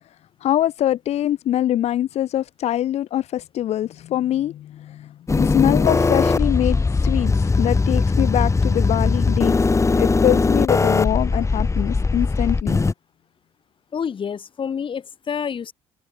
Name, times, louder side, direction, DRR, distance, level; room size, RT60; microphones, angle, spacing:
voice 1, 0.4-9.7 10.0-12.8, left 12 dB, 70° left, 2.7 m, -23 dB
sound 1, 5.3-12.9, left 4 dB, 25° left, 2.3 m, -19 dB
voice 2, 13.9-15.7, left 7 dB, 50° left, 5.1 m, -28 dB
open air
supercardioid pair, 70°, 11 cm